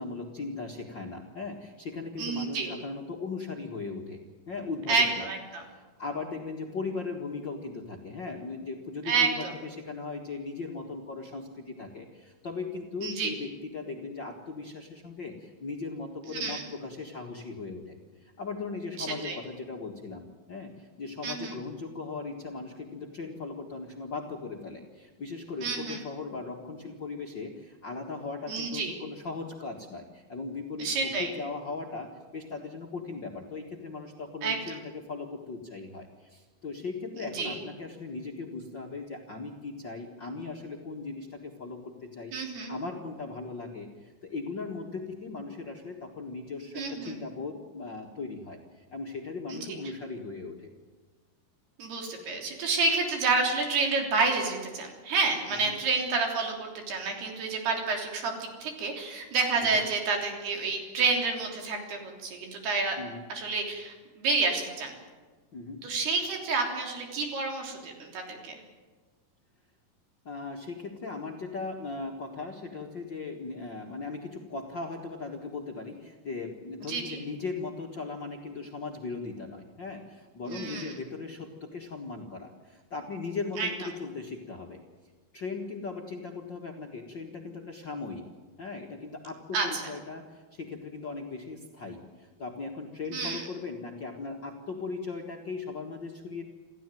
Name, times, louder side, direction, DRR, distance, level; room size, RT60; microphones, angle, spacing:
voice 1, 0.0-4.2 4.5-5.3 5.5-50.7 55.5-55.7 59.7-59.8 63.0-63.2 65.5-65.8 70.2-84.8 85.3-88.2 88.6-96.4, left 4 dB, 45° left, 0 dB, 1.6 m, -38 dB
voice 2, 2.2-2.8 4.9-5.6 9.1-9.5 13.0-13.3 16.3-16.6 19.0-19.4 21.2-21.5 25.6-26.0 28.5-28.9 30.8-31.3 34.4-34.8 37.3-37.6 42.3-42.7 46.8-47.2 49.5-49.6 51.8-63.0 63.3-64.9 65.8-68.6 76.9-77.2 80.5-80.9 83.6-83.7 89.5-89.8 93.1-93.4, right 4 dB, 75° right, 2 dB, 5.4 m, -29 dB
28.0 x 14.5 x 9.2 m, 1.4 s
omnidirectional pair, 4.6 m